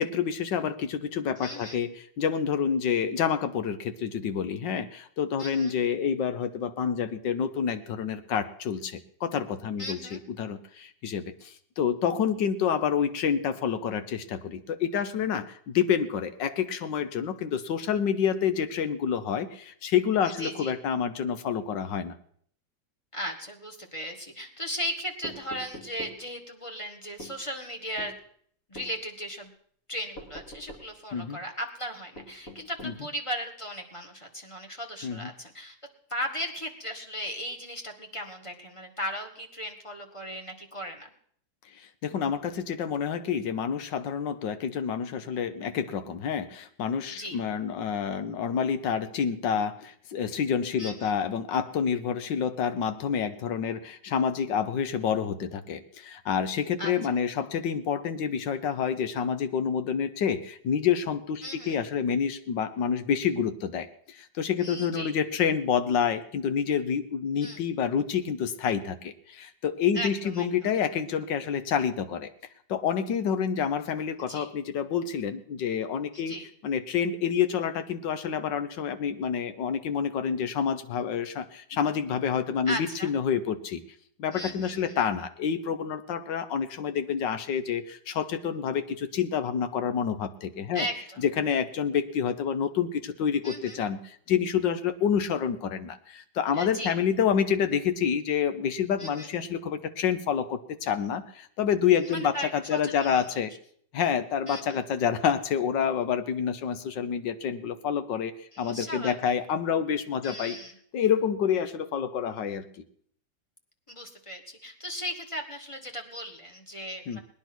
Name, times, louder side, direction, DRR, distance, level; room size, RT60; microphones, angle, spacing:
voice 1, 0.0-22.1 31.1-31.4 32.8-32.9 35.0-35.3 42.0-63.9 64.2-72.3 72.7-76.3 76.6-83.8 84.2-90.8 91.2-103.5 103.9-110.6 110.9-112.7 117.1-117.2, left 7 dB, 70° left, 11 dB, 1.6 m, -28 dB
voice 2, 1.4-1.8 5.4-5.8 9.8-10.2 20.2-20.8 23.1-28.1 28.7-29.5 29.9-35.7 36.1-41.1 47.1-47.4 50.8-51.1 56.8-56.9 61.4-61.8 64.6-65.1 67.4-67.6 69.9-70.1 70.3-70.7 74.3-74.5 76.1-76.5 82.7-83.1 84.3-85.0 90.7-91.2 93.4-93.8 96.5-96.9 99.0-99.3 102.0-103.3 104.5-104.8 108.5-109.3 110.2-110.7 113.9-117.2, equal, 15° left, 3 dB, 1.7 m, -37 dB
sound 1, 25.2-26.2 27.2-27.4 28.0-28.2 28.7-28.9 30.1-30.9 32.1-33.0, equal, 45° left, 2.9 m, -43 dB
19.5 x 10.0 x 6.1 m, 0.62 s
omnidirectional pair, 2.0 m